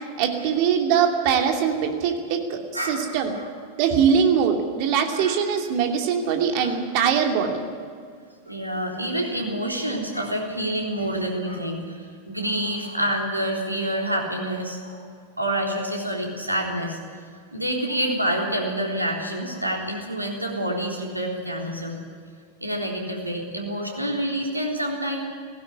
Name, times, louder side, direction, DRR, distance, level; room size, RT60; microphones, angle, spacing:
voice 1, 0.2-2.6 2.9-3.3 3.8-7.6, right 7 dB, 45° right, 3 dB, 2.7 m, -22 dB
voice 2, 2.7-3.5 5.1-5.4 6.6-6.7 8.5-15.0 15.4-17.0 17.5-22.0 22.6-25.2, right 1 dB, 85° right, -1 dB, 3.6 m, -27 dB
17.0 x 15.5 x 9.8 m, 2.1 s
figure-of-eight pair, 90°, 0 cm